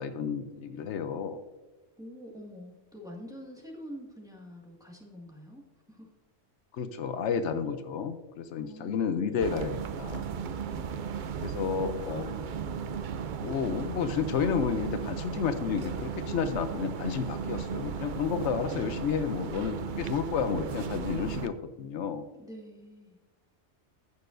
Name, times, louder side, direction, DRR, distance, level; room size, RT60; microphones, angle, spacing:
voice 1, 0.0-1.4 6.8-10.2 11.4-12.7 13.4-22.3, left 6 dB, 80° left, 10 dB, 1.0 m, -31 dB
voice 2, 2.0-5.6 5.9-6.1 8.6-9.6 22.4-23.2, equal, 5° right, -2 dB, 1.8 m, -46 dB
sound 1, 9.4-21.5, right 7 dB, 55° right, 0.6 m, -35 dB
15.0 x 6.7 x 2.6 m, 1.2 s
omnidirectional pair, 1.2 m